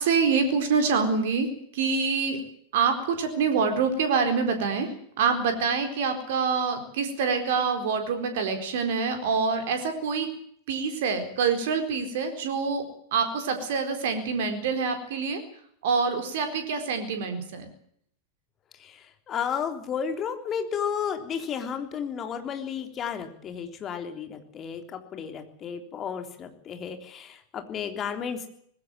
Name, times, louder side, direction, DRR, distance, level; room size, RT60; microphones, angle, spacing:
voice 1, 0.0-1.5 1.7-2.4 2.7-4.9 5.2-10.3 10.7-12.8 13.1-15.4 15.8-17.7, right 5 dB, 55° right, 7 dB, 4.2 m, -26 dB
voice 2, 18.8-28.5, left 7 dB, 30° left, 7 dB, 3.5 m, -33 dB
20.5 x 16.5 x 9.1 m, 0.66 s
figure-of-eight pair, 90°, 0 cm